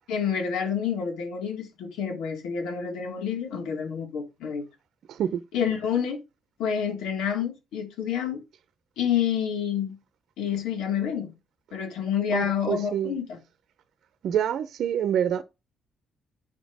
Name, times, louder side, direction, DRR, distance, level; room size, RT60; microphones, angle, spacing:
voice 1, 0.1-4.7 5.5-6.2 6.6-8.4 9.0-10.0 10.4-11.3 11.7-13.4, left 8 dB, 90° left, 3.4 m, -28 dB
voice 2, 5.1-5.4 12.3-13.2 14.2-15.4, right 9 dB, 75° right, 0.7 m, -26 dB
9.5 x 5.3 x 5.0 m
cardioid pair, 90°, 0 cm